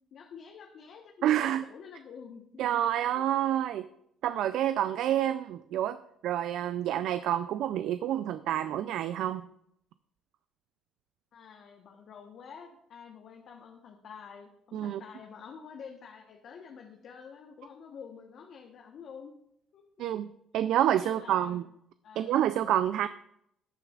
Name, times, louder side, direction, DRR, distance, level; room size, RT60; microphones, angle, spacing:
voice 1, 0.1-2.6 11.3-19.3 19.7-20.1 20.9-21.6 22.0-22.4, left 6 dB, 60° left, 2 dB, 1.1 m, -48 dB
voice 2, 1.2-1.6 2.6-3.8 4.2-6.0 6.2-9.5 14.7-15.0 20.0-21.6 22.2-23.1, right 11 dB, 75° right, 12 dB, 0.3 m, -28 dB
14.0 x 9.2 x 2.4 m, 0.75 s
supercardioid pair, 75°, 0 cm